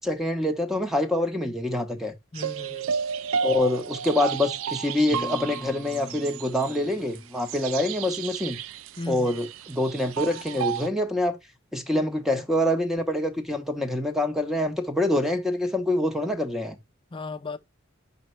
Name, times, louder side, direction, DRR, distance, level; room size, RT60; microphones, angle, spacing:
voice 1, 0.0-2.1 3.4-8.6 9.1-11.4 11.7-16.8, left 1 dB, ahead, 0.9 m, -26 dB
voice 2, 2.3-2.9 9.0-9.4 11.9-12.2 17.1-17.6, left 3 dB, 25° left, 0.5 m, -36 dB
sound 1, 2.4-10.9, right 7 dB, 90° right, 0.4 m, -32 dB
sound 2, 5.1-8.2, left 1 dB, 20° right, 1.3 m, -44 dB
5.4 x 5.3 x 4.4 m
head